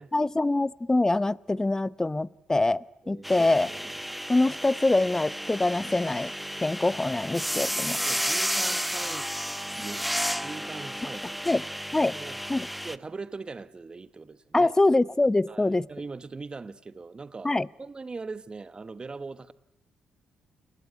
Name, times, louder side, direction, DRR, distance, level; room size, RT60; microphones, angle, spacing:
voice 1, 0.1-3.7 4.3-6.3 6.6-8.0 11.4-11.6 11.9-12.1 12.5-12.7 14.5-15.9 17.4-17.7, left 2 dB, 20° left, 0.9 m, -24 dB
voice 2, 3.0-3.9 7.1-7.3 8.0-9.3 9.8-10.0 10.4-11.4 12.1-14.7 15.5-17.5 17.8-19.5, right 4 dB, 35° right, 1.2 m, -41 dB
sound 1, 3.2-13.0, equal, ahead, 1.0 m, -32 dB
sound 2, 4.7-7.5, left 7 dB, 75° left, 4.7 m, -61 dB
29.0 x 18.5 x 9.6 m
hypercardioid pair, 50°, 3 cm